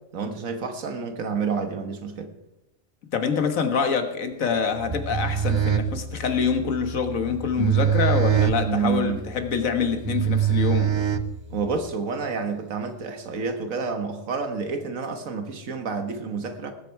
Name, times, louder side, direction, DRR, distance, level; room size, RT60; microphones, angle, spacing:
voice 1, 0.1-2.3 8.6-9.2 11.5-16.7, right 5 dB, 90° right, 7 dB, 1.7 m, -29 dB
voice 2, 3.1-11.0, left 6 dB, 90° left, 7 dB, 1.7 m, -25 dB
sound 1, 4.8-11.8, right 9 dB, 45° right, 0.3 m, -24 dB
19.5 x 8.2 x 4.6 m, 0.92 s
omnidirectional pair, 1.4 m